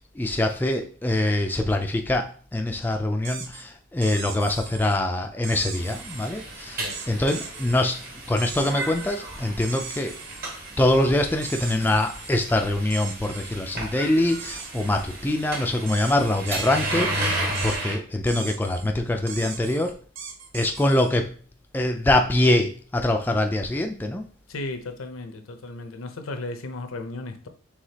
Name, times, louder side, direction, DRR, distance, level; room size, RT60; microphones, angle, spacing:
voice 1, 0.0-10.2 10.8-17.4 17.6-19.9 20.5-21.3 21.7-24.2, left 1 dB, 10° left, 0.3 m, -24 dB
sound 1, 3.2-3.6 4.0-5.0 5.4-6.3 6.9-7.8 8.4-9.2 9.6-10.6 11.4-12.4 12.9-13.6 14.3-15.2 15.9-17.1 17.6-17.8 18.3-18.9 19.3-21.1, right 6 dB, 65° right, 0.7 m, -39 dB
sound 2, 5.7-18.0, right 1 dB, 50° right, 1.2 m, -33 dB
voice 2, 24.5-27.5, left 2 dB, 80° left, 0.6 m, -35 dB
4.9 x 3.5 x 2.8 m
head